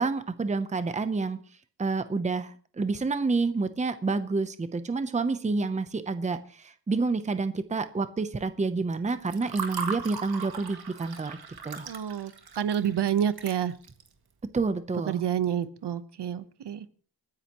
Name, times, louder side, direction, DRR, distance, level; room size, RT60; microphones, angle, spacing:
voice 1, 0.0-1.4 1.8-11.4 11.6-11.9 14.5-15.2, right 3 dB, 15° right, 11 dB, 0.7 m, -29 dB
Water / Fill (with liquid), 8.9-14.1, right 6 dB, 60° right, 1.8 m, -38 dB
voice 2, 11.9-13.7 15.1-16.9, right 9 dB, 80° right, 13 dB, 1.0 m, -29 dB
29.0 x 9.8 x 3.0 m, 0.43 s
wide cardioid pair, 180°, 41 cm